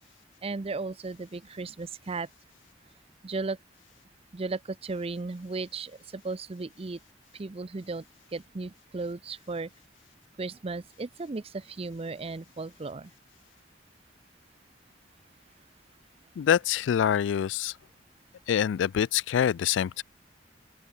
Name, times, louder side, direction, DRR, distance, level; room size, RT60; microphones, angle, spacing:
voice 1, 0.4-2.3 3.2-3.6 4.3-7.0 7.3-8.0 8.3-9.7 10.4-13.1, right 3 dB, 35° right, 0.5 m, -35 dB
voice 2, 16.4-17.8 18.5-20.0, left 9 dB, 85° left, 0.3 m, -25 dB
open air
head